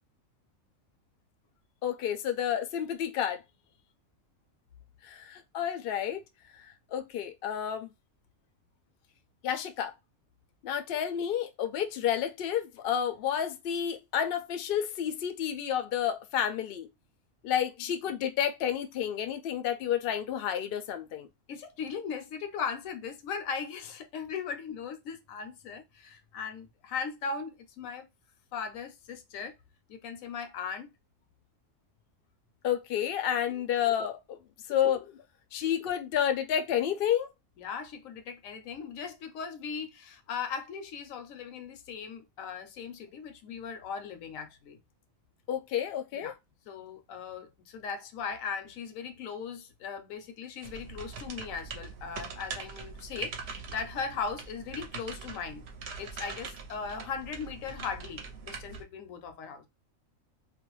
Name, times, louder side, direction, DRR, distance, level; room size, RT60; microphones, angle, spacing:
voice 1, 1.8-3.4 5.0-6.2 6.6-7.9 9.4-9.9 10.6-16.9 17.4-21.3 32.6-34.4 34.7-35.2 35.5-37.3 45.5-46.3, left 9 dB, 65° left, 0.6 m, -30 dB
voice 2, 21.5-28.1 28.5-29.6 29.9-30.9 33.5-33.6 37.6-44.8 46.1-46.4 46.7-55.6 56.0-59.7, left 6 dB, 80° left, 1.0 m, -38 dB
sound 1, 50.6-58.8, right 5 dB, 60° right, 0.8 m, -42 dB
2.5 x 2.2 x 3.0 m
omnidirectional pair, 1.4 m